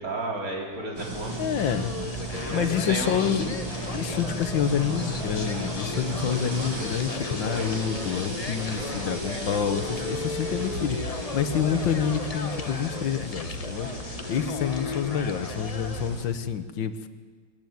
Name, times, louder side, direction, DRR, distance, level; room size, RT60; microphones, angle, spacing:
voice 1, 0.0-1.6 2.4-3.5 14.2-14.5, right 2 dB, 45° right, -1 dB, 4.1 m, -33 dB
sound 1, 1.0-16.2, right 1 dB, 80° right, 5.4 m, -35 dB
sound 2, 1.3-16.1, left 4 dB, 40° left, 0.5 m, -36 dB
voice 2, 1.4-1.9 2.5-3.6 3.9-13.9 14.3-17.1, left 8 dB, 80° left, 11 dB, 1.8 m, -28 dB
21.5 x 14.0 x 9.4 m, 1.5 s
omnidirectional pair, 2.1 m